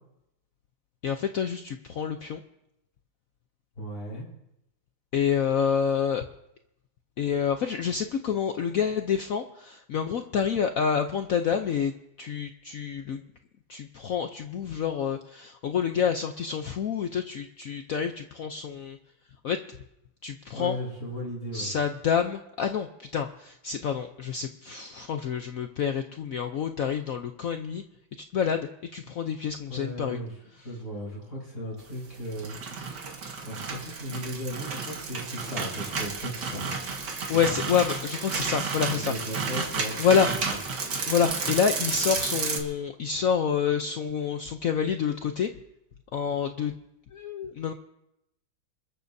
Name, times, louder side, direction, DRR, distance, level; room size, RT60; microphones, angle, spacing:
voice 1, 1.0-2.4 5.1-6.3 7.2-11.9 12.2-13.2 13.7-19.0 19.4-19.6 20.2-20.8 21.5-27.8 28.2-30.2 30.5-30.6 37.3-39.5 40.0-40.3 41.0-45.5 46.1-46.8 47.1-47.7, left 7 dB, 85° left, 6 dB, 0.7 m, -28 dB
voice 2, 3.8-4.2 20.5-21.7 29.7-30.3 30.6-33.1 33.4-36.7 37.2-37.6 38.9-40.3, equal, 35° left, -5 dB, 6.5 m, -36 dB
sound 1, 32.1-42.6, right 4 dB, 55° right, 2.1 m, -32 dB
26.0 x 14.0 x 2.7 m, 0.83 s
omnidirectional pair, 2.3 m